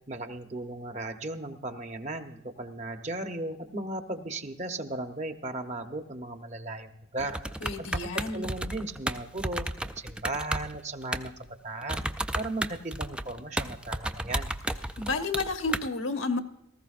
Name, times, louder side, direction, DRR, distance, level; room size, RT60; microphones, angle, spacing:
voice 1, 0.1-7.4 7.8-9.7 10.0-12.1 12.3-14.6, right 2 dB, 35° right, 6 dB, 0.9 m, -36 dB
sound 1, 7.2-11.5 11.8-15.9, right 1 dB, 5° right, 0.3 m, -33 dB
voice 2, 7.6-8.5 15.0-16.4, left 3 dB, 75° left, 6 dB, 1.1 m, -31 dB
18.5 x 14.5 x 2.5 m, 0.90 s
head